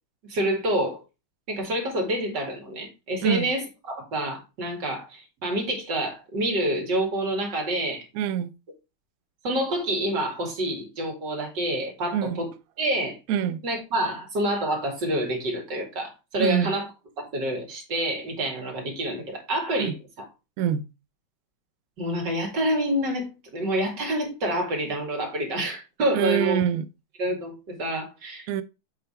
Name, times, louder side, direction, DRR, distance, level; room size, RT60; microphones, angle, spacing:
voice 1, 0.3-1.0 1.5-8.0 9.4-12.5 12.8-13.2 13.6-16.9 17.3-20.3 22.0-26.6 27.2-28.5, right 1 dB, 65° right, 2.6 m, -27 dB
voice 2, 8.1-8.5 12.1-12.4 13.3-13.6 16.4-16.7 19.8-19.9 20.6-20.8 26.1-26.9 28.5-28.6, right 9 dB, 80° right, 0.8 m, -24 dB
7.6 x 3.5 x 4.3 m
omnidirectional pair, 2.1 m